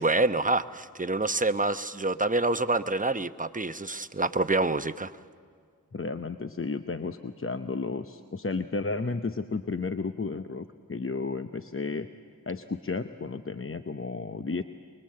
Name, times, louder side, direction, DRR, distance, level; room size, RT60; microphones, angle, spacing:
voice 1, 0.0-5.1, right 2 dB, 25° right, 10 dB, 0.9 m, -27 dB
voice 2, 5.9-12.1 12.5-14.6, left 4 dB, 40° left, 9 dB, 0.8 m, -33 dB
24.5 x 21.5 x 7.7 m, 2.1 s
cardioid pair, 40°, 34 cm